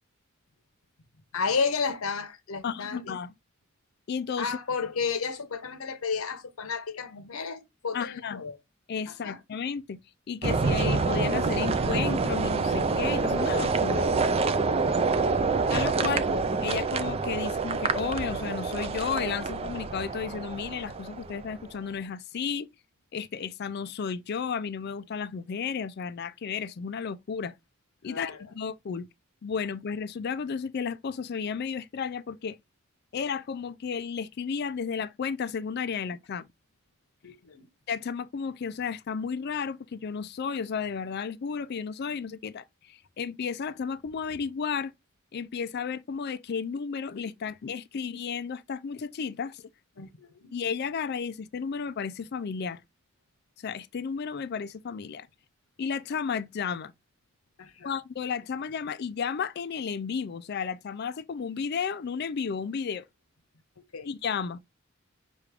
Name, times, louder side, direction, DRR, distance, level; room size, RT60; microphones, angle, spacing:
voice 1, 1.3-3.2 4.4-8.6 9.1-9.4 14.7-14.8 15.0-15.2 28.0-28.4 37.2-37.7 50.0-50.5 57.6-57.9 63.9-64.1, left 5 dB, 85° left, 0.8 m, -32 dB
voice 2, 2.6-3.3 4.1-4.6 7.9-8.4 8.9-10.0 10.3-14.1 15.7-16.3 16.6-22.7 23.1-27.5 28.0-29.1 29.4-32.6 33.1-36.5 37.9-44.9 45.3-49.6 50.5-52.8 53.6-55.3 55.8-56.9 57.8-63.1 64.0-64.6, left 6 dB, 50° left, 0.4 m, -33 dB
sound 1, 10.4-21.6, right 4 dB, 30° right, 0.3 m, -27 dB
6.1 x 2.4 x 3.3 m
head